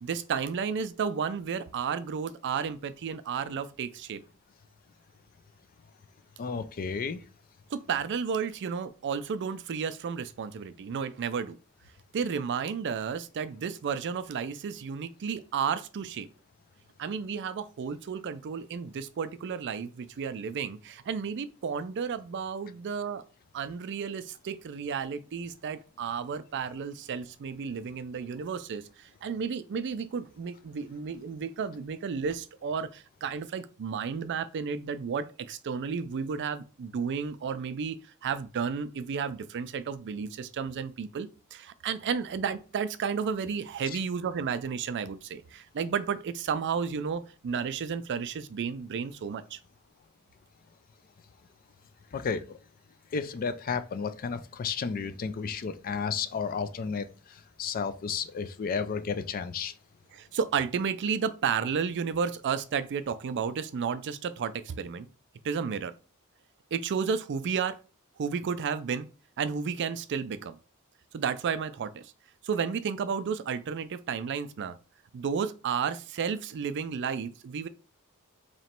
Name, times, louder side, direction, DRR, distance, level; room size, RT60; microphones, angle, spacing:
voice 1, 0.0-4.2 7.7-11.6 12.1-16.3 17.0-23.2 23.5-49.6 60.1-65.1 65.4-65.9 66.7-67.8 68.2-69.1 69.4-70.6 71.1-72.1 72.4-74.8 75.1-77.7, right 6 dB, 55° right, 0.4 m, -32 dB
voice 2, 6.4-7.2 52.1-52.6 53.1-59.7, left 5 dB, 40° left, 0.4 m, -32 dB
3.1 x 2.9 x 4.4 m
head